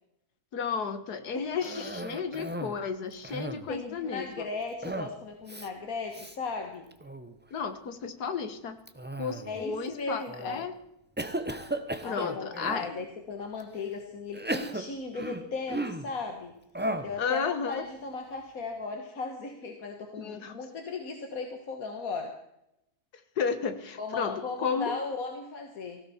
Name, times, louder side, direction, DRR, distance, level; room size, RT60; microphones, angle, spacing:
voice 1, 0.5-4.5 7.5-8.8 9.2-10.8 12.0-12.9 17.2-17.8 20.2-20.5 23.4-24.9, left 6 dB, 85° left, 10 dB, 1.9 m, -33 dB
voice 2, 1.3-1.9 3.7-6.9 9.5-10.6 12.0-16.5 17.0-22.3 24.0-26.0, left 4 dB, 65° left, 4 dB, 1.9 m, -36 dB
Cough, 1.6-2.8 3.1-3.8 4.8-5.2 5.5-5.7 6.1-6.4 6.9-7.3 8.9-9.7 10.3-10.7 11.2-12.9 13.6-13.7 14.3-16.1 16.7-17.2, right 1 dB, 10° right, 0.6 m, -35 dB
18.5 x 16.0 x 4.3 m, 0.83 s
omnidirectional pair, 1.6 m